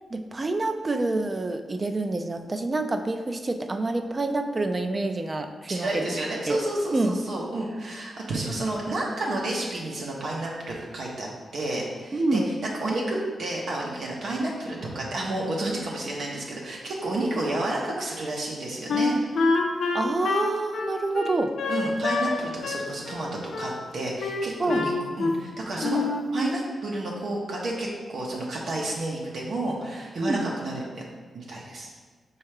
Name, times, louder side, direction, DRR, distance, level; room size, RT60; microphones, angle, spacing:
voice 1, 0.1-6.1 6.5-6.6 6.9-7.2 12.1-12.5 19.9-21.5 24.6-24.8 30.2-30.4, right 2 dB, 30° right, 7 dB, 0.3 m, -27 dB
voice 2, 5.7-12.4 12.8-19.6 21.7-24.9 25.2-26.0 26.3-31.0 31.3-31.9, right 2 dB, 70° right, -3 dB, 0.7 m, -30 dB
Wind instrument woodwind instrument, 18.9-22.4 22.6-23.8 24.2-25.5 25.8-26.3, left 3 dB, 75° left, 0.4 m, -27 dB
4.3 x 2.3 x 4.7 m, 1.4 s
wide cardioid pair, 105°, 0 cm